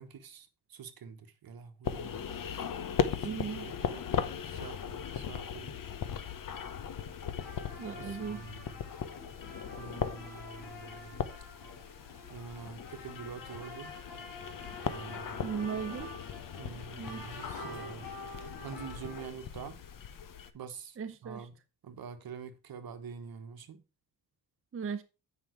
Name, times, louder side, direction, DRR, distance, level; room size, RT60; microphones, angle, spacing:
voice 1, 0.0-2.2 3.1-4.0 4.4-5.8 7.9-8.8 9.8-11.2 12.3-13.9 14.9-15.5 16.6-19.8 20.5-21.0 21.2-21.6 21.8-23.8, right 6 dB, 60° right, 1.4 m, -46 dB
sound 1, 1.8-20.5, left 8 dB, 55° left, 1.0 m, -38 dB
voice 2, 3.2-3.7 7.8-8.4 15.4-16.1 17.0-17.2 21.0-21.5 24.7-25.0, right 6 dB, 35° right, 0.6 m, -37 dB
sound 2, 7.4-19.3, left 2 dB, 85° left, 3.8 m, -48 dB
8.9 x 5.6 x 4.5 m
cardioid pair, 105°, 40 cm